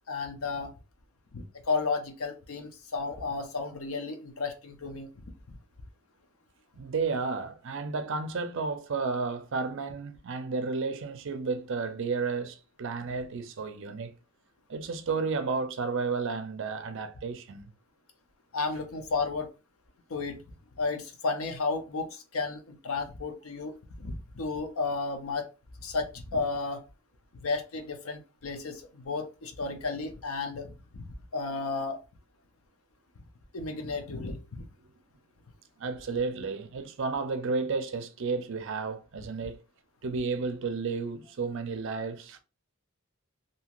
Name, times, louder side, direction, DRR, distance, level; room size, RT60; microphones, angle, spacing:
voice 1, 0.1-0.7 1.3-5.1 18.5-19.5 20.1-20.4 20.8-25.5 25.8-26.8 27.3-30.7 30.9-32.0 33.5-34.7, left 4 dB, 70° left, 0.6 m, -33 dB
voice 2, 6.8-14.1 14.7-17.7 35.8-39.6 40.0-42.4, right 4 dB, 55° right, 0.5 m, -32 dB
2.7 x 2.4 x 2.9 m
head